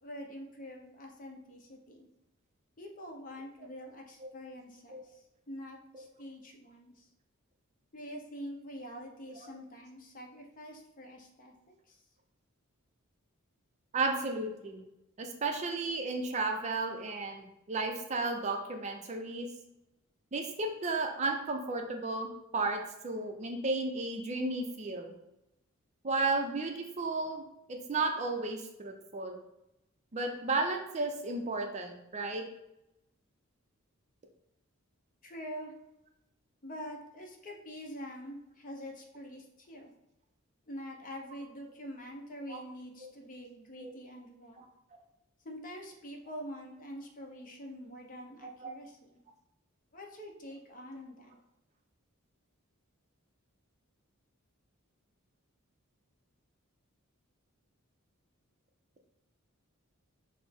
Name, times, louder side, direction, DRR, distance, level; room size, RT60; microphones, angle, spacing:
voice 1, 0.0-2.1 2.8-7.1 7.9-11.5 11.9-12.0 35.2-35.7 36.6-39.9 40.7-44.6 45.4-49.2 49.9-51.3, equal, 40° left, 2 dB, 0.6 m, -45 dB
voice 2, 13.9-14.8 15.2-19.5 20.3-25.1 26.0-27.4 27.7-29.4 30.1-32.4 42.5-42.6 43.0-43.1 43.8-43.9 48.4-48.7, right 3 dB, 30° right, 4 dB, 0.4 m, -33 dB
5.9 x 2.0 x 3.5 m, 0.87 s
head